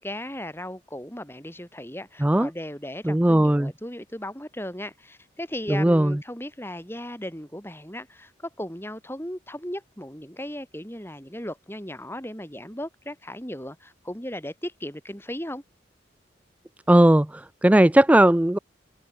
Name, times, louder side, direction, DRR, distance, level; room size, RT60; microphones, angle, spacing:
voice 1, 0.0-8.3 8.6-15.6, left 1 dB, 10° left, 7.9 m, -36 dB
voice 2, 3.1-3.7 5.7-6.2 16.9-18.6, right 1 dB, 5° right, 0.3 m, -18 dB
open air
head